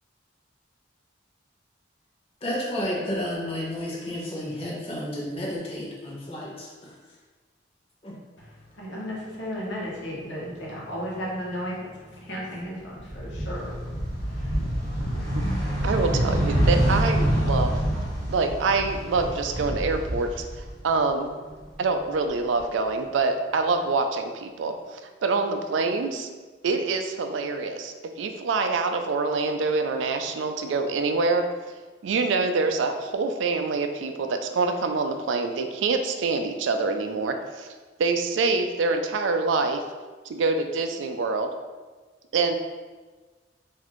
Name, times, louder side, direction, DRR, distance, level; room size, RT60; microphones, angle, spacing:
voice 1, 2.4-6.9 8.0-8.1, equal, 30° left, -4 dB, 0.8 m, -31 dB
voice 2, 8.8-14.6, equal, 75° left, -4 dB, 1.0 m, -35 dB
sound 1, 12.9-21.1 21.4-22.6, equal, 50° left, 1.4 m, -26 dB
voice 3, 15.8-17.7 18.3-20.3 20.8-21.3 21.8-26.3 26.6-31.4 32.0-37.7 38.0-39.8 40.3-41.5 42.3-42.5, right 4 dB, 85° right, 6 dB, 0.4 m, -25 dB
3.9 x 2.6 x 3.0 m, 1.3 s
head